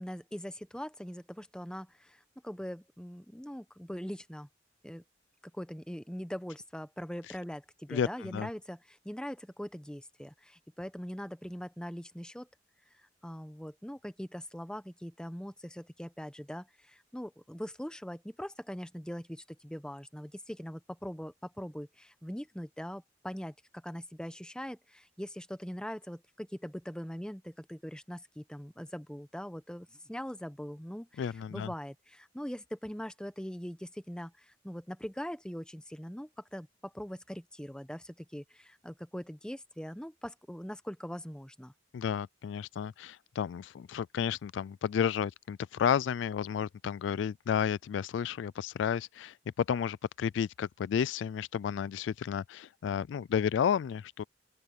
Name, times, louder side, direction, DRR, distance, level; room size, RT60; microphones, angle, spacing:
voice 1, 0.0-4.5 4.8-5.0 5.5-12.5 13.0-41.7, equal, 5° left, 0.9 m, -42 dB
voice 2, 7.9-8.5 31.2-31.7 41.9-54.2, left 8 dB, 75° left, 0.3 m, -32 dB
open air
head